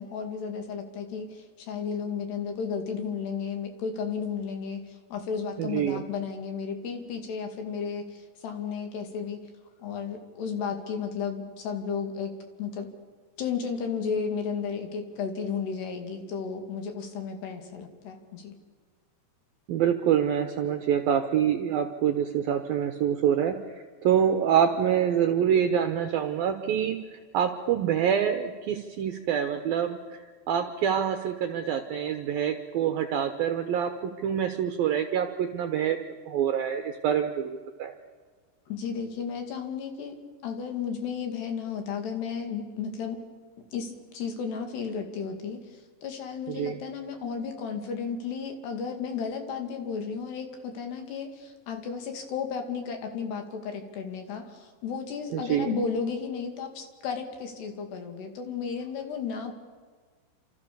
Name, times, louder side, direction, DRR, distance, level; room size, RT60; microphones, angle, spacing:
voice 1, 0.0-9.4 9.8-12.3 12.6-12.9 13.4-18.6 38.7-40.2 40.4-43.2 43.7-59.5, left 6 dB, 60° left, 5 dB, 4.4 m, -33 dB
voice 2, 5.6-6.0 19.7-27.0 27.3-37.9 46.5-46.8 55.3-55.7, right 9 dB, 70° right, 7 dB, 2.3 m, -26 dB
29.5 x 27.0 x 7.0 m, 1.5 s
omnidirectional pair, 5.6 m